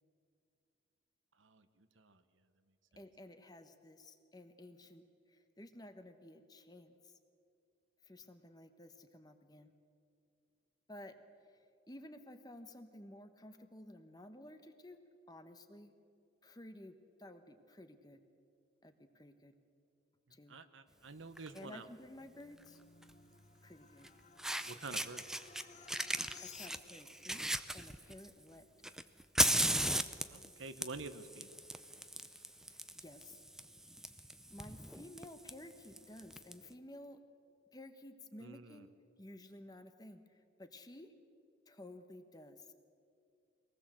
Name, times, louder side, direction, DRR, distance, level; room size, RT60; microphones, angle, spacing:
voice 1, 1.4-2.2 20.5-21.9 24.6-25.3 30.3-31.5 38.4-38.9, right 3 dB, 85° right, 10 dB, 1.2 m, -48 dB
voice 2, 3.0-7.1 8.0-9.7 10.9-11.2 11.5-11.6 11.9-15.0 15.3-15.9 16.4-18.2 18.8-19.5 20.3-20.6 21.5-22.8 23.6-24.1 26.4-27.4 27.7-28.7 32.7-33.4 34.0-34.1 34.5-37.2 37.7-38.9 39.2-41.1 41.7-42.7, left 1 dB, 20° left, 8 dB, 1.2 m, -54 dB
Fire, 21.4-21.6 23.0-23.1 24.0-24.1 24.4-25.6 25.9-28.3 28.8-36.5, right 1 dB, 5° right, 0.5 m, -37 dB
sound 1, 22.0-27.2, left 6 dB, 40° left, 1.2 m, -57 dB
23.5 x 19.0 x 7.6 m, 2.4 s
head